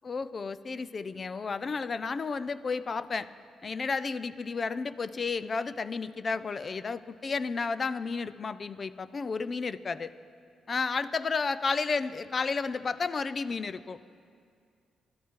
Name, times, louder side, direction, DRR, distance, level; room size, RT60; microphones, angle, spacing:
voice 1, 0.0-3.3 3.6-10.1 10.7-14.0, left 4 dB, 35° left, 15 dB, 0.5 m, -32 dB
27.0 x 12.5 x 3.7 m, 2.3 s
cardioid pair, 120°, 0 cm